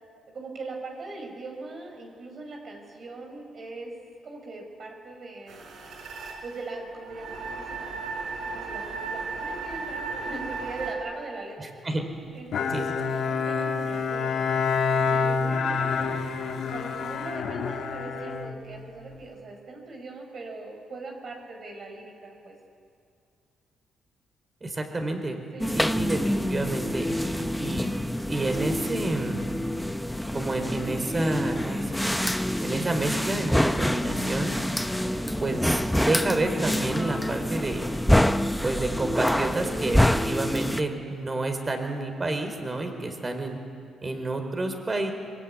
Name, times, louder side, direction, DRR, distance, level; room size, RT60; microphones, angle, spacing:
voice 1, 0.3-3.9 4.2-5.7 6.4-8.0 8.4-11.7 12.3-16.2 16.6-22.6 25.5-25.9 35.0-35.3, right 3 dB, 55° right, 2 dB, 5.0 m, -40 dB
sound 1, 5.5-10.9, right 4 dB, 70° right, 5.2 m, -35 dB
voice 2, 11.6-12.0 12.7-12.9 24.6-25.4 25.7-27.9 28.3-29.4 30.3-32.2 32.6-34.5 35.4-37.9 38.6-43.6 44.0-45.1, right 2 dB, 25° right, 6 dB, 4.3 m, -29 dB
Bowed string instrument, 12.5-19.2, left 5 dB, 70° left, 2.3 m, -27 dB
sound 2, 25.6-40.8, left 1 dB, 5° left, 0.9 m, -26 dB
24.5 x 22.0 x 9.8 m, 2.3 s
cardioid pair, 90°, 0 cm